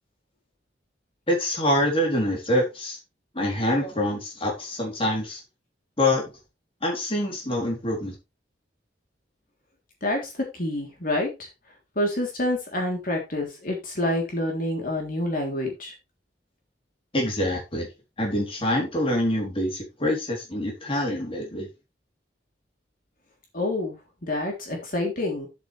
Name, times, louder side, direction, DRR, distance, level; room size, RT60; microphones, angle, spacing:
voice 1, 1.3-3.0 3.3-5.4 6.0-6.2 6.8-8.2 17.1-17.9 18.2-21.7, left 1 dB, 30° left, 3.6 m, -25 dB
voice 2, 10.0-11.5 11.9-15.9 23.5-25.5, left 1 dB, 50° left, 3.4 m, -28 dB
10.0 x 8.0 x 3.4 m
head